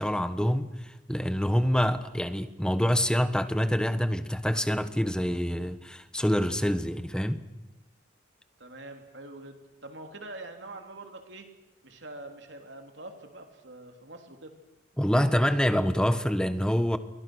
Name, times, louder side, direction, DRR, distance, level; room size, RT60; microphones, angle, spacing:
voice 1, 0.0-7.4 15.0-17.0, equal, 5° left, 1.2 m, -26 dB
voice 2, 8.6-11.5 11.8-14.5, right 2 dB, 65° right, 3.4 m, -44 dB
29.5 x 23.0 x 6.4 m
head